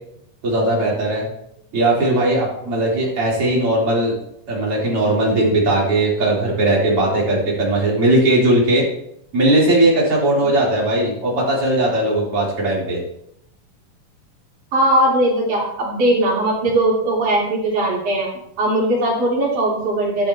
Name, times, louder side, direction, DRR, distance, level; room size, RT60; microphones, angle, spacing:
voice 1, 0.4-1.3 1.7-4.2 4.5-8.8 9.3-13.0, right 1 dB, 40° right, -5 dB, 4.4 m, -18 dB
voice 2, 14.7-18.3 18.6-20.3, right 1 dB, 65° right, -5 dB, 5.1 m, -19 dB
12.5 x 11.5 x 3.0 m, 0.74 s
omnidirectional pair, 3.8 m